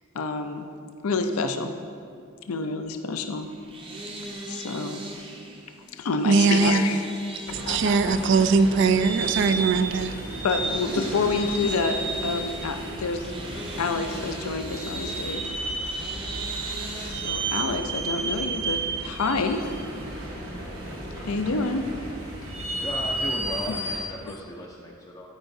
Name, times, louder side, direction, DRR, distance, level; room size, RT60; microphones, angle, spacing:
voice 1, 0.1-0.7 1.0-1.7 2.5-3.5 4.5-5.0 6.0-7.0 7.7-8.3 9.4-9.6 10.4-13.3 13.8-15.5 17.0-19.7 21.2-21.9 23.7-23.8, left 3 dB, 85° left, 7 dB, 0.5 m, -28 dB
sound 1, 3.4-17.1, right 1 dB, 25° right, 0.7 m, -40 dB
voice 2, 6.2-6.8 7.7-10.1, right 4 dB, 55° right, 11 dB, 0.3 m, -21 dB
sound 2, 7.5-24.0, right 2 dB, 75° right, 1.3 m, -32 dB
voice 3, 22.8-25.3, left 1 dB, 15° left, -2 dB, 0.4 m, -36 dB
13.0 x 4.8 x 2.7 m, 2.3 s
head